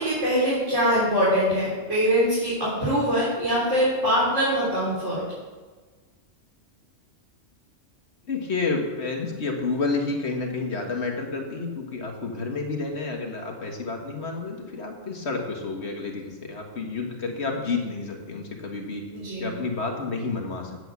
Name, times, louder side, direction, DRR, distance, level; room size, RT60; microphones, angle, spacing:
voice 1, 0.0-5.2 19.1-19.5, equal, 85° right, -10 dB, 4.3 m, -23 dB
voice 2, 8.2-19.0 19.4-20.9, left 3 dB, 65° left, 2 dB, 1.9 m, -30 dB
8.3 x 8.1 x 8.2 m, 1.4 s
omnidirectional pair, 1.2 m